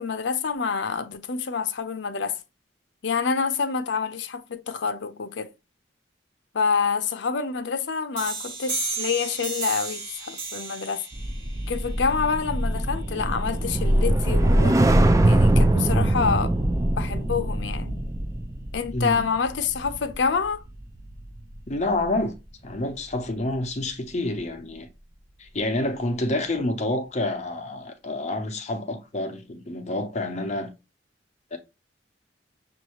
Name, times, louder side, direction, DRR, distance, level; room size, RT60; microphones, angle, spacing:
voice 1, 0.0-2.4 3.0-5.5 6.5-11.0 11.7-14.8 15.3-16.5 17.0-18.0 18.7-20.6, left 5 dB, 75° left, 0.6 m, -27 dB
sound 1, 8.2-13.6, right 4 dB, 60° right, 1.8 m, -35 dB
sound 2, 11.1-21.5 21.9-22.2, right 1 dB, 20° right, 0.4 m, -23 dB
voice 2, 18.9-19.3 21.7-22.3 22.6-24.9 25.4-30.7 31.5-31.6, left 2 dB, 40° left, 0.7 m, -28 dB
6.3 x 2.6 x 3.0 m
head